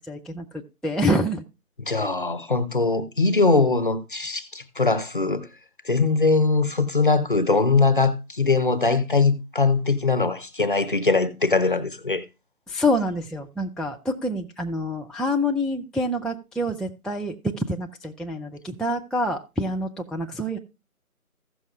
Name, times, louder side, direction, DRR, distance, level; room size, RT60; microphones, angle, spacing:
voice 1, 0.0-1.4 12.7-20.6, left 1 dB, ahead, 0.4 m, -27 dB
voice 2, 1.8-5.5 5.9-12.2, left 3 dB, 35° left, 0.9 m, -21 dB
15.5 x 6.6 x 2.4 m
figure-of-eight pair, 165°, 44 cm